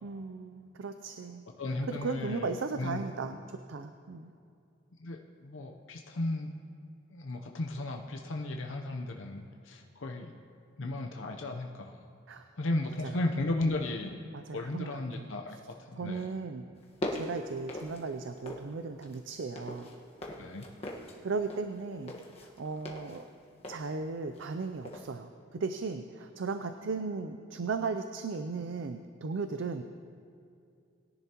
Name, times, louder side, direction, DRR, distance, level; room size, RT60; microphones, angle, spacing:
voice 1, 0.0-1.5 1.9-4.3 12.3-12.4 13.0-13.1 14.3-15.2 16.0-16.6 17.1-19.9 21.2-22.1 22.4-23.3 23.7-29.8, right 4 dB, 70° right, 8 dB, 0.5 m, -36 dB
voice 2, 1.6-3.0 5.0-6.5 7.1-10.4 10.8-12.1 12.6-14.2 14.5-16.3 20.4-20.7, left 2 dB, 80° left, 2 dB, 0.7 m, -35 dB
sound 1, 16.8-18.7 19.0-24.6 24.8-25.1, left 1 dB, 30° left, 1.3 m, -41 dB
20.5 x 10.5 x 2.9 m, 2.4 s
head